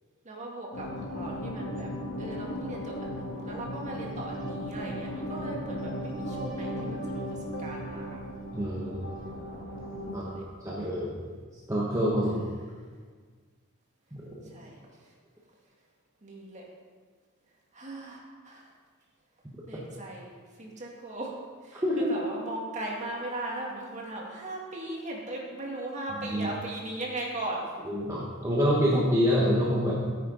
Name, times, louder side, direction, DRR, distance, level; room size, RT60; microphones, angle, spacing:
voice 1, 0.2-1.9 2.2-8.2 10.1-10.4 12.3-12.4 14.4-15.1 16.2-16.7 17.7-18.7 19.7-21.4 21.6-27.7, right 1 dB, 35° right, -2 dB, 2.0 m, -38 dB
sound 1, 0.7-10.3, equal, 65° left, 2.0 m, -36 dB
voice 2, 8.5-9.1 10.1-10.3 10.6-11.2 11.7-12.4 14.1-14.2 21.8-22.1 26.3-26.5 27.9-30.0, equal, 15° right, -6 dB, 1.3 m, -26 dB
13.0 x 9.5 x 3.9 m, 1.5 s
head